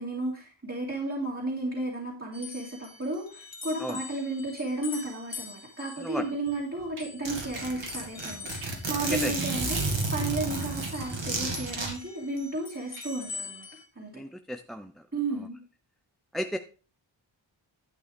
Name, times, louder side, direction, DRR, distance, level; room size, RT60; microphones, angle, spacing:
voice 1, 0.0-13.7 13.9-14.2 15.1-15.6, right 2 dB, 30° right, -5 dB, 2.7 m, -33 dB
sound 1, 2.3-11.2 11.5-13.8, left 4 dB, 65° left, 2.1 m, -44 dB
Zipper (clothing), 6.5-6.6 6.8-6.9 7.3-11.9, right 2 dB, 65° right, 2.7 m, -31 dB
sound 2, 6.6-7.1 7.5-10.0 10.4-13.5, right 2 dB, 85° right, 3.5 m, -45 dB
voice 2, 14.1-15.0 16.3-16.6, equal, ahead, 7 dB, 0.5 m, -34 dB
11.0 x 8.3 x 3.6 m, 0.36 s
wide cardioid pair, 95°, 49 cm